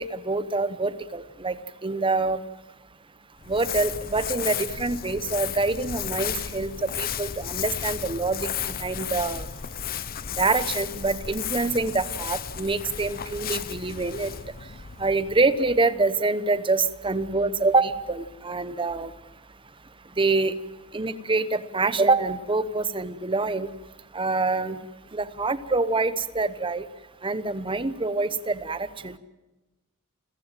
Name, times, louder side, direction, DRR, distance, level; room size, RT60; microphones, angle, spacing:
voice 1, 0.0-2.4 3.5-9.5 10.4-14.3 15.0-19.1 20.2-20.5 20.9-23.7 24.1-24.8 25.1-26.8 27.2-29.2, right 3 dB, 25° right, 14 dB, 1.0 m, -26 dB
Crumpling crinkling, 3.4-15.9, left 9 dB, 45° left, 0.7 m, -34 dB
29.5 x 15.0 x 9.1 m, 1.1 s
head